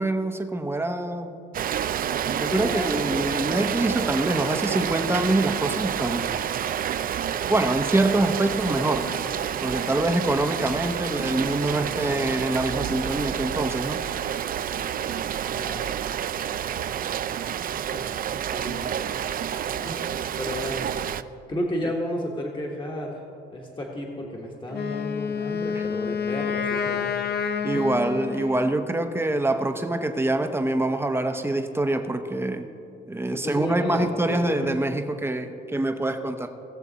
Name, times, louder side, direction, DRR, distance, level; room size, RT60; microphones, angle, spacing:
voice 1, 0.0-1.4 2.2-6.3 7.5-9.1 9.6-14.0 25.7-25.8 27.6-32.7 33.1-36.5, right 2 dB, 10° right, 6 dB, 0.9 m, -25 dB
Rain, 1.5-21.2, right 9 dB, 45° right, 0.4 m, -29 dB
voice 2, 2.2-3.6 15.6-15.9 17.9-18.9 19.8-20.9 21.5-23.2 23.5-27.2 27.7-27.8 33.3-34.7, equal, 25° left, -1 dB, 1.4 m, -32 dB
Wind instrument woodwind instrument, 24.7-28.8, left 7 dB, 55° left, 0.8 m, -29 dB
18.0 x 6.9 x 4.1 m, 2.6 s
cardioid pair, 90°, 20 cm